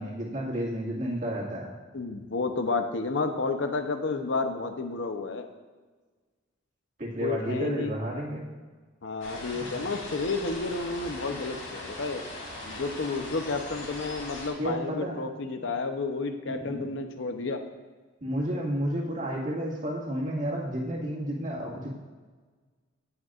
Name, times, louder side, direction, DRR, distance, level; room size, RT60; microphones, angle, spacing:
voice 1, 0.0-1.7 7.0-8.5 9.5-9.8 14.6-15.2 16.4-16.9 18.2-21.9, equal, 40° right, -4 dB, 2.0 m, -31 dB
voice 2, 1.9-5.5 7.2-7.9 9.0-12.2 12.7-17.6, left 3 dB, 65° left, 6 dB, 0.8 m, -31 dB
sound 1, 9.2-14.5, left 1 dB, 85° left, 2.9 m, -40 dB
17.5 x 6.5 x 2.5 m, 1.4 s
head